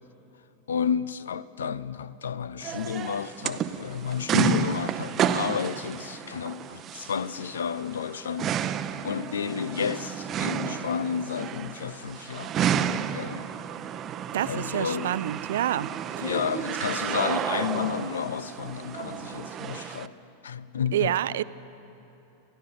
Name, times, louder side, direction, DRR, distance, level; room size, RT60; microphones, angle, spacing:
voice 1, 0.7-8.7 9.0-12.5 13.1-13.5 14.4-15.1 16.2-20.1 20.4-21.1, left 7 dB, 65° left, 0.6 m, -31 dB
sound 1, 2.6-20.1, right 9 dB, 30° right, 0.7 m, -31 dB
voice 2, 14.3-15.9 16.2-16.3 20.9-21.4, right 12 dB, 60° right, 0.4 m, -27 dB
27.5 x 15.5 x 6.9 m
figure-of-eight pair, 90°, 0 cm